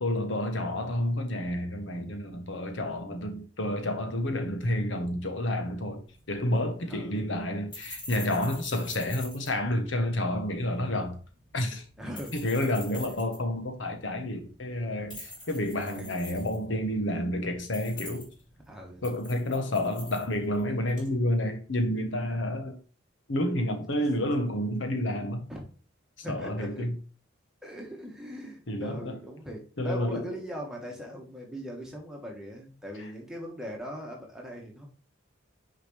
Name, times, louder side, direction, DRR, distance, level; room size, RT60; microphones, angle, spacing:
voice 1, 0.0-11.2 11.5-11.8 12.3-18.3 19.0-22.8 23.3-25.4 26.3-26.9 28.7-29.2 29.8-30.3, left 1 dB, 75° left, 1.2 m, -30 dB
sound 1, 6.1-21.1, left 1 dB, 25° left, 2.8 m, -47 dB
voice 2, 6.9-7.3 8.8-8.9 12.0-13.0 14.7-14.9 15.9-16.2 18.7-19.0 23.8-23.9 25.5-25.6 26.2-26.9 27.6-34.8, equal, 5° right, 1.5 m, -40 dB
6.3 x 4.9 x 3.3 m
head